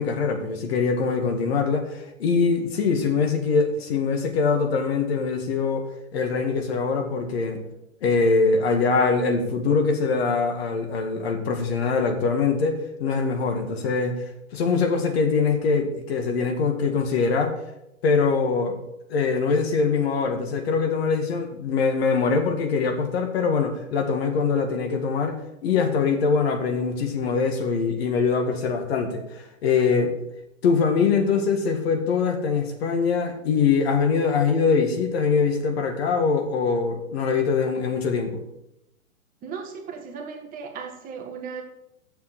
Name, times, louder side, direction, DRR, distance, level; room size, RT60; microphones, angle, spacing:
voice 1, 0.0-7.6 8.0-14.2 14.5-17.6 18.0-18.8 19.1-30.1 30.6-38.4, left 5 dB, 50° left, 5 dB, 2.0 m, -23 dB
voice 2, 39.4-41.6, right 6 dB, 20° right, 3 dB, 1.3 m, -36 dB
7.8 x 7.0 x 8.1 m, 0.85 s
hypercardioid pair, 125°, 40 cm